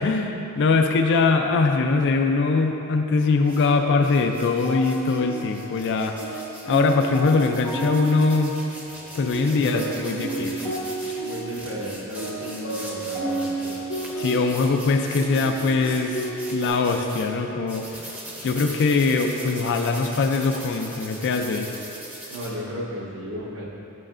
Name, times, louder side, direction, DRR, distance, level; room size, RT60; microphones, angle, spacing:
voice 1, 0.0-6.4 6.7-8.5 9.2-10.8 14.2-16.2 16.5-18.0 18.4-21.8, left 4 dB, 55° left, 5 dB, 0.4 m, -22 dB
sound 1, 3.1-16.7, right 3 dB, 85° left, 1.5 m, -33 dB
sound 2, 3.4-3.7 4.0-17.3 17.7-22.5, right 1 dB, 5° right, 0.7 m, -41 dB
voice 2, 9.4-10.7 11.2-13.8 22.3-23.7, equal, 60° right, -4 dB, 1.0 m, -34 dB
7.6 x 5.8 x 2.5 m, 2.8 s
head